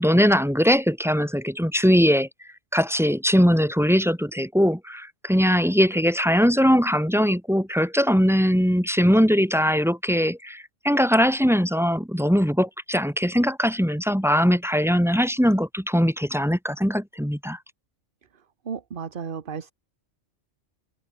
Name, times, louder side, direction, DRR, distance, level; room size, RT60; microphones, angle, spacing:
voice 1, 0.0-2.3 2.7-17.6, equal, ahead, 1.7 m, -21 dB
voice 2, 18.6-19.7, right 6 dB, 50° right, 1.2 m, -33 dB
omnidirectional pair, 1.2 m